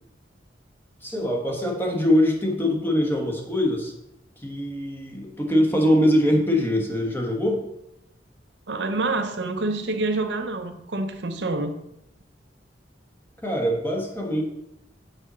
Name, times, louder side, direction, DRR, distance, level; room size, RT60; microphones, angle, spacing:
voice 1, 1.0-3.9 4.4-7.6 13.4-14.4, left 1 dB, 15° left, 1 dB, 1.3 m, -23 dB
voice 2, 8.7-11.8, right 2 dB, 70° right, 7 dB, 0.7 m, -27 dB
6.6 x 4.3 x 6.1 m, 0.84 s
head